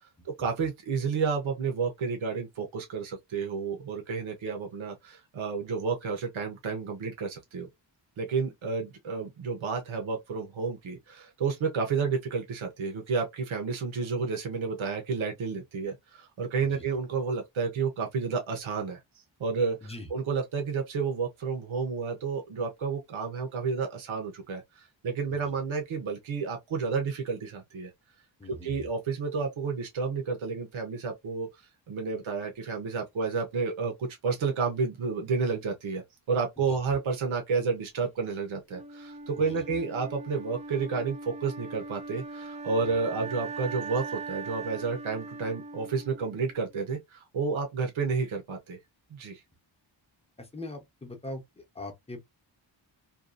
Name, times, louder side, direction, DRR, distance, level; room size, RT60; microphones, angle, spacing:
voice 1, 0.2-7.7 8.2-19.0 19.4-27.9 28.4-31.5 31.9-48.8 49.1-49.4, right 5 dB, 80° right, 0.8 m, -31 dB
voice 2, 28.4-28.9 36.6-36.8 39.4-39.8 50.4-52.2, left 1 dB, 15° left, 0.7 m, -42 dB
Wind instrument woodwind instrument, 38.7-46.7, right 3 dB, 15° right, 0.4 m, -40 dB
2.6 x 2.3 x 2.4 m
wide cardioid pair, 145°, 47 cm